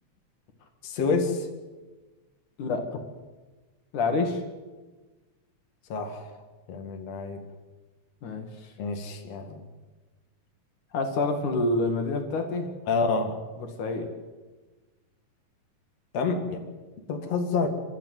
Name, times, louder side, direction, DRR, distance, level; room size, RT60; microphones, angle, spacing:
voice 1, 0.8-1.5 5.9-6.2 6.7-7.4 8.8-9.6 11.6-11.8 12.9-13.4 16.1-16.6 17.1-17.7, left 4 dB, 60° left, 3 dB, 3.2 m, -28 dB
voice 2, 2.6-3.0 3.9-4.4 8.2-8.5 10.9-12.7 13.6-14.1, left 3 dB, 80° left, 5 dB, 3.7 m, -27 dB
29.5 x 13.5 x 9.4 m, 1.3 s
omnidirectional pair, 3.5 m